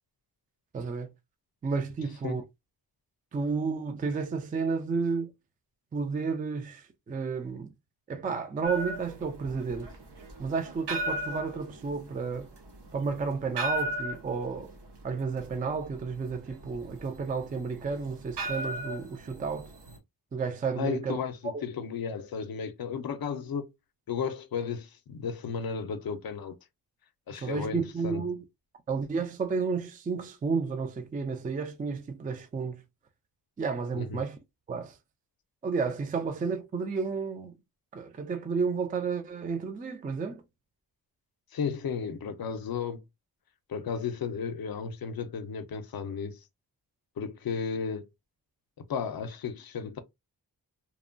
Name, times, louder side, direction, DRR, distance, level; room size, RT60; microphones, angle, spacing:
voice 1, 0.7-1.1 1.6-2.4 3.3-5.3 5.9-7.7 8.1-9.9 10.4-12.5 12.9-14.7 15.0-19.7 20.3-21.2 21.5-21.6 27.3-28.4 28.9-32.8 33.6-34.4 34.7-35.0 35.6-37.6 37.9-40.4, right 5 dB, 20° right, 0.3 m, -32 dB
sound 1, 8.6-20.0, right 1 dB, 80° right, 0.9 m, -37 dB
voice 2, 20.8-23.7 24.1-26.6 27.3-28.2 33.9-34.2 41.5-43.0 43.7-46.4 47.2-48.1 48.8-50.0, left 6 dB, 60° left, 0.6 m, -34 dB
3.0 x 2.1 x 2.4 m
wide cardioid pair, 145°, 41 cm